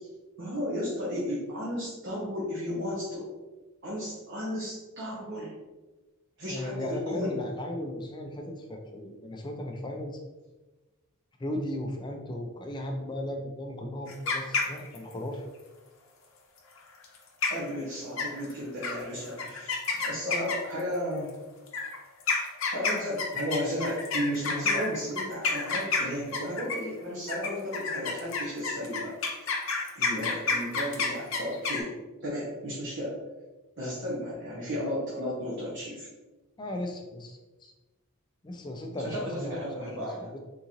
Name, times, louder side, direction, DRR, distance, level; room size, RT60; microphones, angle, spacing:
voice 1, 0.4-3.3 3.8-5.5 6.4-7.4 17.5-21.3 22.7-29.2 29.9-31.9 32.2-33.2 33.8-36.1 39.0-40.3, equal, 55° right, -7 dB, 0.8 m, -34 dB
voice 2, 6.5-10.2 11.4-15.4 36.6-37.7 38.4-40.4, left 1 dB, 20° left, 3 dB, 0.3 m, -36 dB
sound 1, 14.1-15.1 17.0-17.2 17.4-17.8 18.2-18.5 18.8-19.0 19.4-20.8 21.7-26.9 27.3-31.8, left 4 dB, 60° left, 0.6 m, -29 dB
3.7 x 2.5 x 2.9 m, 1.2 s
head